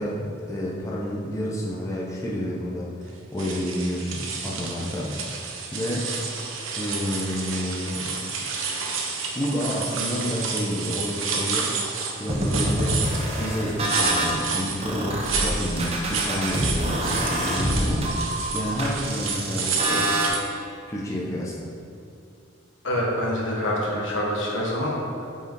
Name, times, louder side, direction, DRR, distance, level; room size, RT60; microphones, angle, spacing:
voice 1, 0.0-5.1 5.7-6.1 6.8-8.2 9.3-11.7 12.2-20.2 20.9-21.7, equal, 15° left, -5 dB, 0.6 m, -29 dB
sound 1, 3.4-20.4, right 5 dB, 80° right, 0.8 m, -30 dB
sound 2, 12.3-14.4 14.8-20.3, right 1 dB, 30° right, 0.7 m, -26 dB
voice 2, 22.8-25.3, equal, 70° left, -3 dB, 1.2 m, -26 dB
5.3 x 4.9 x 4.5 m, 2.4 s
head